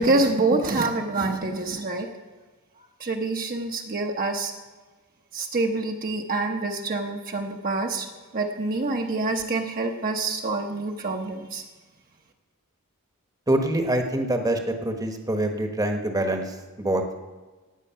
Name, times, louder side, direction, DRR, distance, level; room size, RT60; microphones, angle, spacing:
voice 1, 0.0-2.1 3.0-4.5 5.3-8.1 8.3-11.6, right 2 dB, 40° right, 2 dB, 1.0 m, -26 dB
voice 2, 13.5-17.0, right 1 dB, 15° right, 4 dB, 1.1 m, -25 dB
18.0 x 8.3 x 5.6 m, 1.3 s
head